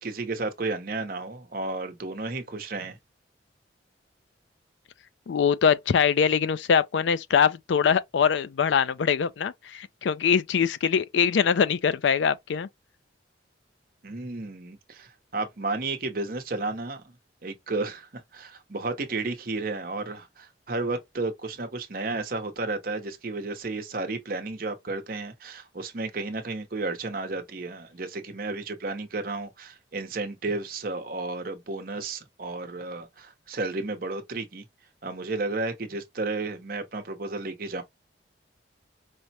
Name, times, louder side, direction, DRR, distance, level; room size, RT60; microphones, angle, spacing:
voice 1, 0.0-3.0 14.0-17.2 17.4-34.6 35.0-37.8, right 3 dB, 50° right, 0.8 m, -32 dB
voice 2, 5.3-12.7, left 7 dB, 80° left, 0.4 m, -23 dB
4.8 x 2.1 x 2.7 m
head